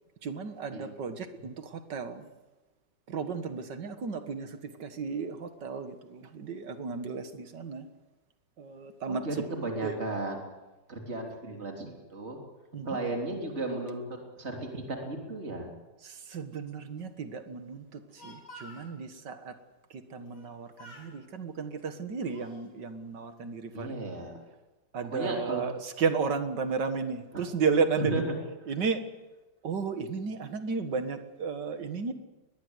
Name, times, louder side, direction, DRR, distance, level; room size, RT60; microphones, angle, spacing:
voice 1, 0.2-2.3 3.1-7.9 8.6-9.5 9.8-10.0 12.7-13.0 16.0-19.6 19.9-24.0 24.9-28.2 28.7-29.0 29.6-32.1, right 5 dB, 70° right, 8 dB, 2.3 m, -33 dB
voice 2, 9.1-10.4 10.9-12.4 12.8-15.7 23.7-24.4 25.1-25.6 27.3-27.4 28.0-28.3, right 2 dB, 35° right, 1 dB, 3.6 m, -34 dB
Speech, 17.9-18.9 20.3-20.5 20.8-21.2 21.9-22.7, equal, 65° left, 4.3 m, -50 dB
22.5 x 20.0 x 8.1 m, 1.1 s
omnidirectional pair, 1.9 m